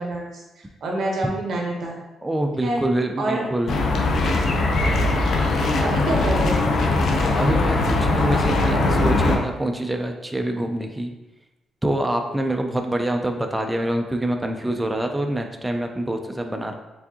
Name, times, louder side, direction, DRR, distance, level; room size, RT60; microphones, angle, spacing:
voice 1, 0.0-1.9 2.6-2.8 3.2-3.4 5.6-6.7, right 2 dB, 50° right, 0 dB, 0.9 m, -27 dB
voice 2, 2.2-3.9 7.3-11.1 11.8-16.7, right 1 dB, 5° right, 3 dB, 0.3 m, -25 dB
sound 1, 3.7-9.4, left 2 dB, 50° left, 0.6 m, -20 dB
4.6 x 3.5 x 2.8 m, 1.0 s
cardioid pair, 170°, 0 cm